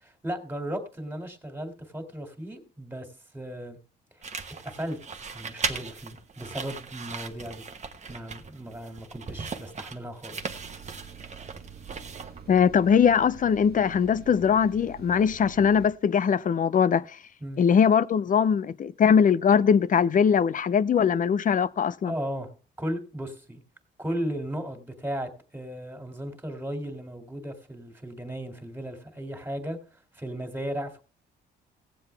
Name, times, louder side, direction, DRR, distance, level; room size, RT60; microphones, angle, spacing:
voice 1, 0.0-3.1 3.3-3.8 4.2-5.0 5.3-7.6 8.1-10.6 17.4-17.6 22.0-22.5 22.8-23.6 24.0-31.0, equal, 10° right, 2.4 m, -36 dB
sound 1, 4.2-12.6, right 5 dB, 35° right, 1.1 m, -38 dB
sound 2, 10.4-15.9, right 7 dB, 50° right, 1.4 m, -46 dB
voice 2, 12.5-17.0 17.6-22.1, left 7 dB, 40° left, 0.6 m, -21 dB
17.0 x 7.7 x 3.4 m
cardioid pair, 90°, 20 cm